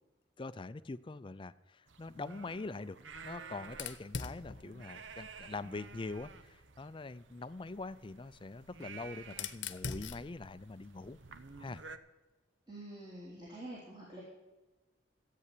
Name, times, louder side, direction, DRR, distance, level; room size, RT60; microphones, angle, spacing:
voice 1, 0.4-11.2 11.6-11.8, left 3 dB, 25° left, 15 dB, 0.4 m, -44 dB
sound 1, 1.9-12.0, right 5 dB, 80° right, 0.8 m, -52 dB
Fire, 3.7-6.4 7.6-11.8, left 5 dB, 70° left, 0.9 m, -46 dB
voice 2, 12.7-14.2, right 1 dB, 25° right, -6 dB, 3.0 m, -47 dB
14.0 x 8.5 x 8.3 m, 1.2 s
head